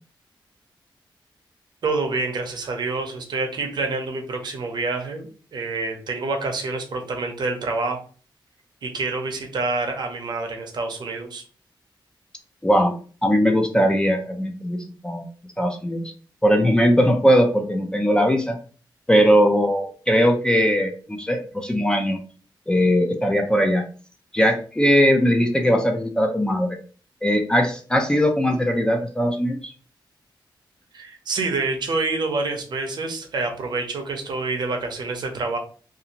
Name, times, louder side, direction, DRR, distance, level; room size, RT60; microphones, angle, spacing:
voice 1, 1.8-8.0 8.8-11.4 30.9-35.6, right 3 dB, 60° right, 3 dB, 0.6 m, -27 dB
voice 2, 12.6-12.9 13.2-15.2 15.6-16.1 16.4-18.6 19.1-22.2 22.7-23.9 24.3-26.8 27.2-29.7, equal, 10° left, 3 dB, 0.3 m, -20 dB
2.5 x 2.4 x 2.8 m, 0.40 s
wide cardioid pair, 175°, 8 cm